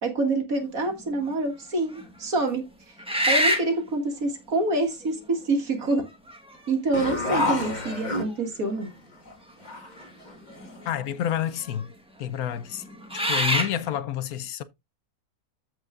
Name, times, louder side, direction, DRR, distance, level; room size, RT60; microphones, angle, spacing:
voice 1, 0.0-2.6 3.3-6.1 6.7-8.9, right 2 dB, 65° right, 2.3 m, -26 dB
sound 1, 0.9-1.3 2.0-2.1 3.0-3.8 5.0-5.1 6.1-6.6 7.0-7.1 7.7-8.3 10.0-10.1 10.4-11.0 11.6-11.8 12.7-13.8, equal, 5° right, 1.4 m, -26 dB
sound 2, 6.9-8.7 9.2-9.3 9.6-10.9, left 2 dB, 30° left, 1.5 m, -29 dB
voice 2, 10.9-11.9 12.2-12.8 13.1-14.6, left 11 dB, 75° left, 1.1 m, -29 dB
14.5 x 4.8 x 2.5 m
omnidirectional pair, 1.6 m